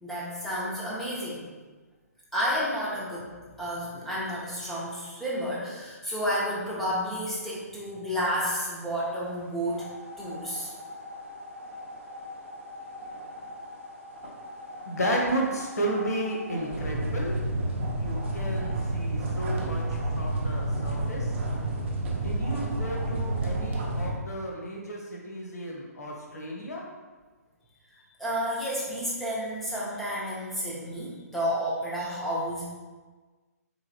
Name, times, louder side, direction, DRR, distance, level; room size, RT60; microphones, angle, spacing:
voice 1, 0.0-1.4 2.3-9.9 10.2-10.7 28.2-32.6, equal, 5° left, -7 dB, 0.6 m, -31 dB
sound 1, 9.7-24.1, right 1 dB, 45° right, 0.7 m, -32 dB
voice 2, 14.9-17.3 17.9-19.8 20.1-21.3 22.2-26.8, right 1 dB, 70° left, -1 dB, 0.9 m, -32 dB
3.7 x 3.1 x 2.7 m, 1.3 s
figure-of-eight pair, 135°, 9 cm